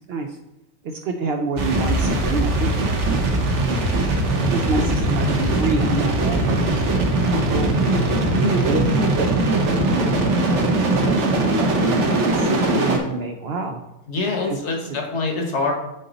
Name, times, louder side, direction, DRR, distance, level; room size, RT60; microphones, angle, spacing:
voice 1, 0.8-2.9 3.2-3.5 4.3-6.8 7.3-7.8 8.4-9.3 9.8-10.1 11.0-13.8 14.5-15.0, right 3 dB, 75° right, 4 dB, 0.5 m, -28 dB
sound 1, 1.6-13.0, right 2 dB, 55° right, 1.1 m, -20 dB
voice 2, 14.1-15.7, left 3 dB, 50° left, 2 dB, 1.2 m, -24 dB
6.9 x 4.0 x 3.9 m, 0.92 s
omnidirectional pair, 1.6 m